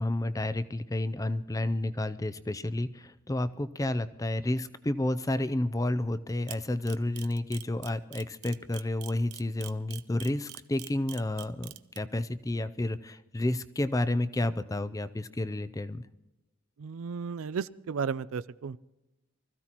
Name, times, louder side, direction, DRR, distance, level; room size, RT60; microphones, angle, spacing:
voice 1, 0.0-16.0, left 1 dB, 15° left, 13 dB, 0.5 m, -31 dB
Camera, 6.5-12.0, right 15 dB, 90° right, 0.8 m, -43 dB
voice 2, 16.8-18.8, right 6 dB, 70° right, 16 dB, 0.4 m, -34 dB
24.5 x 15.0 x 3.0 m, 0.99 s
head